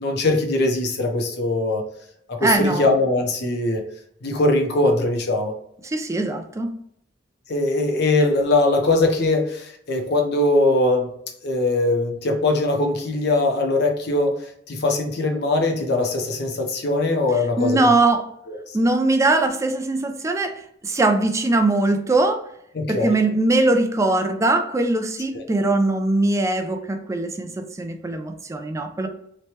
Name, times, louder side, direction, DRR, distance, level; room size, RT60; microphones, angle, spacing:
voice 1, 0.0-1.8 2.3-3.8 4.2-5.5 7.5-11.1 11.4-17.8 18.5-18.6 22.7-23.2 25.3-25.4, left 2 dB, 60° left, 3 dB, 0.6 m, -21 dB
voice 2, 2.4-2.9 5.8-6.7 17.6-18.3 18.7-22.4 22.9-27.5 27.8-29.1, right 2 dB, 15° right, 5 dB, 0.3 m, -21 dB
3.0 x 2.2 x 2.8 m, 0.72 s
head